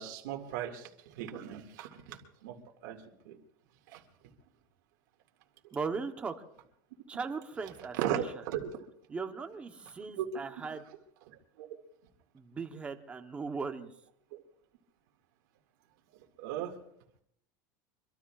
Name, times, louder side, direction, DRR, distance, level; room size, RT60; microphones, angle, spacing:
voice 1, 0.0-2.6 2.8-3.0 3.3-3.4 3.9-4.0 7.9-8.9 10.2-10.3 11.3-11.7 14.3-14.4 16.4-16.7, right 10 dB, 70° right, 2 dB, 2.1 m, -37 dB
voice 2, 5.7-6.3 7.1-8.4 9.1-10.8 12.3-13.9, right 4 dB, 10° right, 6 dB, 0.9 m, -38 dB
24.5 x 24.0 x 2.4 m, 0.73 s
supercardioid pair, 180°, 10 cm